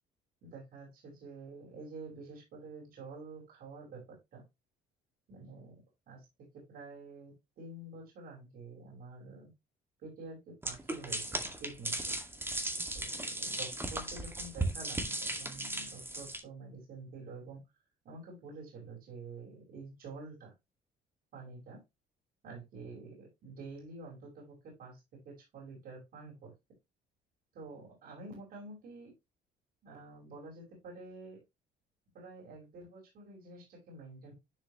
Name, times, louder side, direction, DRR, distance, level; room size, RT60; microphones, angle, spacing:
voice 1, 0.4-4.4 5.3-5.8 6.1-6.3 6.5-9.5 10.0-12.2 12.9-17.6 18.1-20.5 21.3-21.8 22.4-25.0 25.3-26.5 27.5-29.1 29.8-31.4 32.1-34.3, right 3 dB, 60° right, -2 dB, 5.1 m, -48 dB
sound 1, 10.6-16.4, right 2 dB, 15° right, 2.1 m, -36 dB
11.0 x 4.9 x 3.1 m, 0.22 s
cardioid pair, 110°, 17 cm